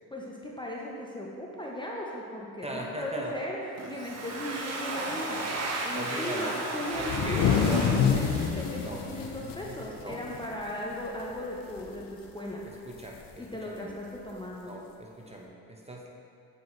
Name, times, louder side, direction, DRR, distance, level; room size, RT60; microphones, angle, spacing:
voice 1, 0.1-3.6 3.9-7.7 8.0-12.8 13.4-14.8, left 1 dB, 10° left, -3 dB, 0.7 m, -37 dB
voice 2, 2.6-3.4 5.9-6.6 7.0-8.2 8.8-9.0 10.0-10.2 11.3-11.5 12.7-13.9 14.6-16.1, equal, 15° right, -1 dB, 0.8 m, -39 dB
Domestic sounds home sounds, 3.8-9.4, right 2 dB, 40° right, 0.9 m, -35 dB
sound 1, 7.0-10.7 11.0-11.2 11.6-12.0 13.1-13.2 14.3-14.4, left 7 dB, 55° left, 0.6 m, -27 dB
7.9 x 4.6 x 3.2 m, 2.5 s
supercardioid pair, 70°, 39 cm